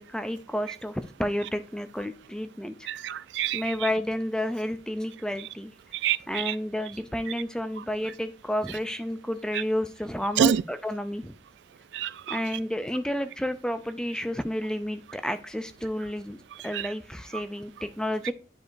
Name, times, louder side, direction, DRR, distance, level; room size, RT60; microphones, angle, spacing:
voice 1, 0.0-2.7 3.5-5.7 6.3-11.3 12.3-16.4 16.6-18.3, equal, 5° left, 0.4 m, -31 dB
voice 2, 2.9-3.6 6.0-6.5 10.4-10.6 11.9-12.4 16.7-16.8, right 8 dB, 90° right, 0.3 m, -26 dB
10.5 x 4.8 x 2.6 m
head